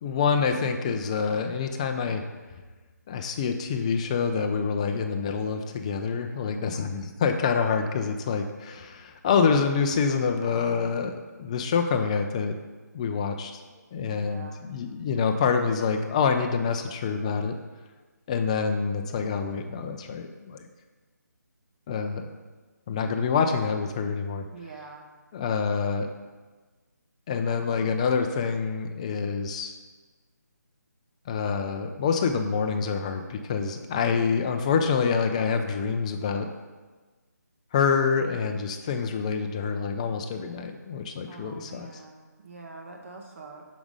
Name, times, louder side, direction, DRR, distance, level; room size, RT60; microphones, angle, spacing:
voice 1, 0.0-2.2 3.1-12.6 12.9-13.6 13.9-17.5 18.3-20.7 21.9-22.3 22.9-24.5 25.3-26.1 27.3-29.8 31.3-36.5 37.7-41.9, left 5 dB, 20° left, 6 dB, 0.4 m, -26 dB
voice 2, 14.1-14.6 24.5-25.1 41.3-43.6, right 3 dB, 45° right, 1 dB, 0.8 m, -45 dB
5.9 x 5.1 x 5.3 m, 1.3 s
figure-of-eight pair, 150°, 10 cm